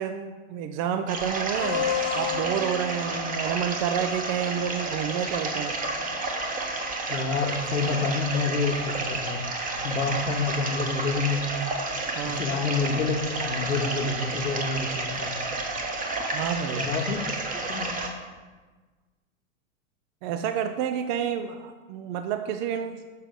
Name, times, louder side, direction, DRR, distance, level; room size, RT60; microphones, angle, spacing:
voice 1, 0.0-1.9 2.1-5.7 12.1-12.4 16.3-16.8 20.2-23.1, right 8 dB, 40° right, 8 dB, 0.5 m, -29 dB
sound 1, 1.1-18.1, right 3 dB, 20° right, 1.1 m, -31 dB
sound 2, 1.6-6.9, left 8 dB, 45° left, 1.2 m, -35 dB
voice 2, 7.1-9.4 9.8-11.5 12.2-13.2 13.5-15.3 16.7-17.3 17.7-18.0, left 4 dB, 90° left, -1 dB, 1.1 m, -28 dB
6.5 x 6.1 x 5.2 m, 1.3 s
hypercardioid pair, 110°, 40 cm